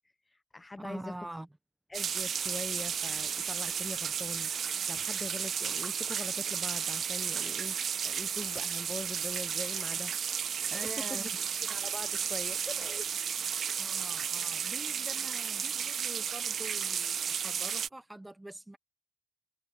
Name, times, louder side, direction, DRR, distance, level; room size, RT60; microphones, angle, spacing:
voice 1, 0.3-1.2 1.9-7.8 8.0-10.1 10.7-10.8 11.1-11.3 11.7-13.4, left 2 dB, 15° left, 0.5 m, -43 dB
voice 2, 0.8-1.5 10.7-11.4 13.8-18.8, right 1 dB, 10° right, 0.8 m, -45 dB
sound 1, 1.9-17.9, right 7 dB, 55° right, 0.6 m, -33 dB
cardioid pair, 145°, 0 cm